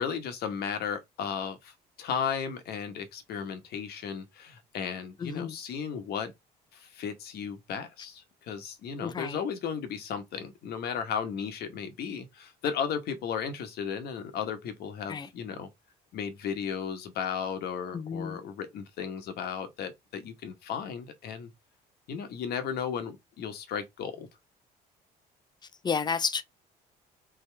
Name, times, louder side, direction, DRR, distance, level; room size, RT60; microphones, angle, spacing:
voice 1, 0.0-6.3 6.7-15.7 16.1-21.5 22.1-24.3, left 7 dB, 70° left, 1.2 m, -35 dB
voice 2, 5.2-5.5 9.0-9.4 15.1-15.3 17.9-18.4 25.8-26.4, left 5 dB, 25° left, 0.6 m, -31 dB
3.9 x 3.6 x 3.4 m
cardioid pair, 110°, 17 cm